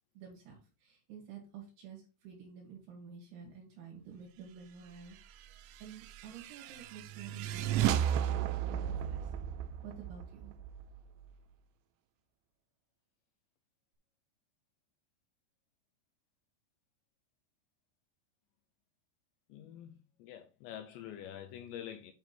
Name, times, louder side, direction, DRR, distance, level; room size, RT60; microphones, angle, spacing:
voice 1, 0.1-5.5 5.8-9.3 9.8-10.6, right 7 dB, 70° right, 4.2 m, -50 dB
sound 1, 5.7-11.3, right 10 dB, 90° right, 2.5 m, -34 dB
voice 2, 19.5-22.1, left 10 dB, 80° left, 2.6 m, -46 dB
9.2 x 3.5 x 4.4 m
omnidirectional pair, 5.6 m